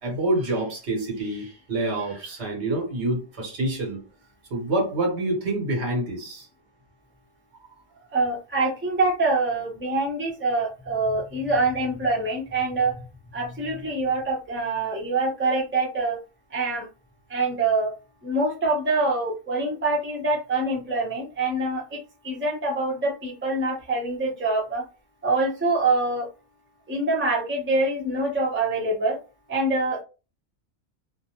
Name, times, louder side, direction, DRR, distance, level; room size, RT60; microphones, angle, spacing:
voice 1, 0.0-4.0 4.5-6.5, right 2 dB, 75° right, 1.2 m, -27 dB
voice 2, 8.1-12.9 13.3-16.2 16.5-16.8 17.3-17.9 18.2-24.8 25.2-26.3 26.9-29.2 29.5-30.0, right 2 dB, 10° right, 0.7 m, -25 dB
2.4 x 2.1 x 2.8 m
omnidirectional pair, 1.1 m